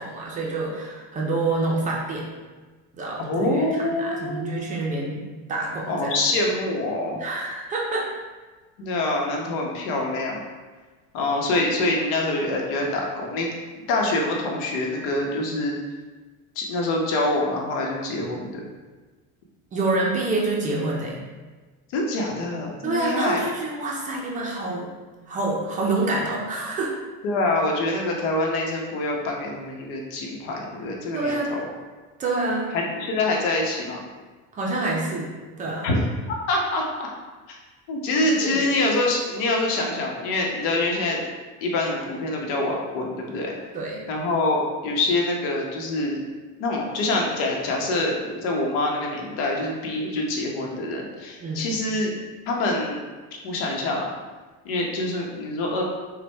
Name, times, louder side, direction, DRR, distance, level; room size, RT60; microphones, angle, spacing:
voice 1, 0.0-2.3 3.0-3.6 4.0-5.2 5.5-6.1 7.2-8.1 19.7-21.2 22.8-24.9 25.3-26.9 31.1-31.6 32.2-32.8 34.5-35.3 35.6-35.9 38.2-38.6 43.7-44.0 51.4-51.7, right 2 dB, 20° right, -2 dB, 0.4 m, -27 dB
voice 2, 3.2-5.0 5.9-7.2 8.8-10.4 11.1-13.5 13.9-15.8 16.5-18.7 21.9-23.4 27.2-31.6 32.7-34.0 35.8-36.0 36.3-37.1 37.5-37.6 37.9-41.2 41.6-43.5 44.1-46.2 46.6-52.1 52.5-53.0 53.4-54.1 54.6-55.8, left 2 dB, 90° left, 0 dB, 1.0 m, -25 dB
5.8 x 2.2 x 3.3 m, 1.3 s
cardioid pair, 175°, 36 cm